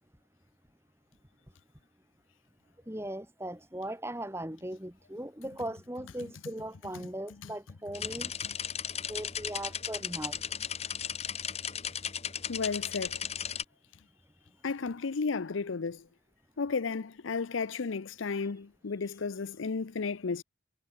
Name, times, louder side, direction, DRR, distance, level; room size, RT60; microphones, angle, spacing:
voice 1, 2.9-8.4 9.1-10.4, right 1 dB, 15° right, 2.0 m, -39 dB
sound 1, 7.9-13.6, left 8 dB, 30° left, 1.6 m, -36 dB
voice 2, 12.5-13.2 14.6-16.0 16.6-20.4, left 4 dB, 85° left, 0.6 m, -33 dB
head